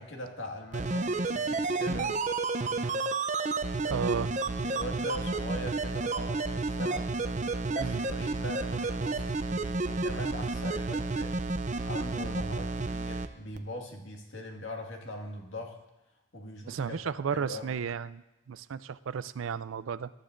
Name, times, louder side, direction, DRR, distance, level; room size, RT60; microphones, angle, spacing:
voice 1, 0.0-2.1 3.8-4.1 4.6-7.1 7.7-15.8 16.3-17.0 17.3-17.8, left 1 dB, 75° left, 1 dB, 1.9 m, -41 dB
sound 1, 0.7-13.3 13.6-13.7, right 3 dB, 35° right, 0.6 m, -31 dB
voice 2, 3.9-4.3 7.8-8.0 16.7-20.1, right 6 dB, 85° right, 15 dB, 0.4 m, -34 dB
22.0 x 12.0 x 2.6 m, 0.95 s
head